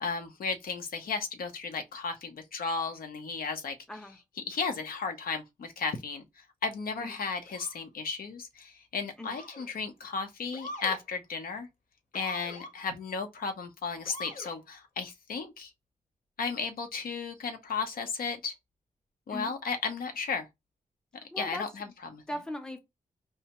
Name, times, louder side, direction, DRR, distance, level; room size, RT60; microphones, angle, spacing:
voice 1, 0.0-3.7 4.5-6.2 6.6-11.7 12.1-15.7 16.4-18.6 19.3-20.5 21.4-22.2, left 5 dB, 90° left, 0.7 m, -34 dB
Motor vehicle (road) / Siren, 7.4-7.8 9.2-9.8 10.5-11.0 12.1-12.7 14.0-14.6, left 1 dB, 65° left, 0.9 m, -43 dB
voice 2, 21.3-21.7 22.3-22.8, left 1 dB, 5° left, 0.5 m, -38 dB
4.6 x 2.1 x 2.9 m
wide cardioid pair, 120°, 15 cm